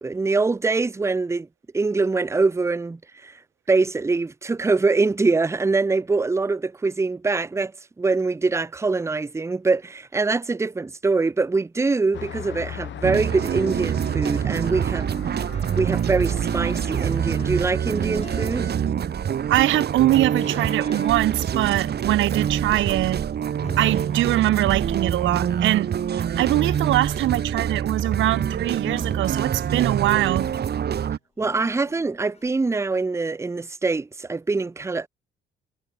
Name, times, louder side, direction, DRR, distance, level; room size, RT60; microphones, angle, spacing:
voice 1, 0.0-1.5 1.7-3.4 3.7-7.7 8.0-15.1 15.7-18.7 31.4-35.1, right 3 dB, 15° right, 0.6 m, -24 dB
Traffic noise roadway noise, 12.1-17.6, left 10 dB, 70° left, 7.5 m, -40 dB
sound 1, 13.0-31.2, right 8 dB, 55° right, 2.3 m, -25 dB
sound 2, 15.5-17.7 18.2-19.6 20.4-23.3 23.6-26.0 26.3-28.3 28.8-30.8 31.4-32.5, left 4 dB, 30° left, 7.8 m, -46 dB
voice 2, 19.5-23.2 23.8-30.5, right 15 dB, 75° right, 0.5 m, -22 dB
cardioid pair, 90°, 20 cm